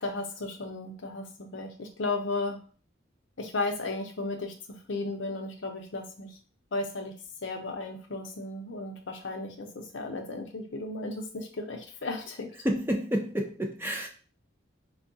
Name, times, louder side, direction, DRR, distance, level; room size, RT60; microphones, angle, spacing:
voice 1, 0.0-2.6 3.4-6.3 6.7-7.1 7.4-12.5, left 2 dB, 70° left, 3 dB, 0.6 m, -34 dB
voice 2, 12.6-14.1, equal, 10° right, 2 dB, 0.4 m, -29 dB
4.5 x 2.3 x 2.6 m, 0.39 s
head